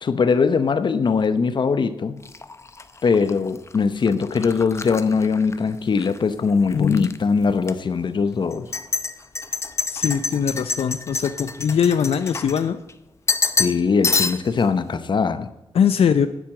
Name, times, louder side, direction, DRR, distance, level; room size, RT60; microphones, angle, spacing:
voice 1, 0.0-2.2 3.0-8.7 13.6-15.5, left 5 dB, 55° left, 0.8 m, -21 dB
sound 1, 2.2-6.2 6.5-7.2 7.6-7.7 8.5-12.9 13.3-13.8 14.0-14.6, left 4 dB, 30° left, 0.6 m, -27 dB
voice 2, 6.7-7.1 9.9-12.8 15.7-16.3, left 7 dB, 85° left, 0.5 m, -21 dB
9.2 x 8.5 x 7.7 m
wide cardioid pair, 120°, 10 cm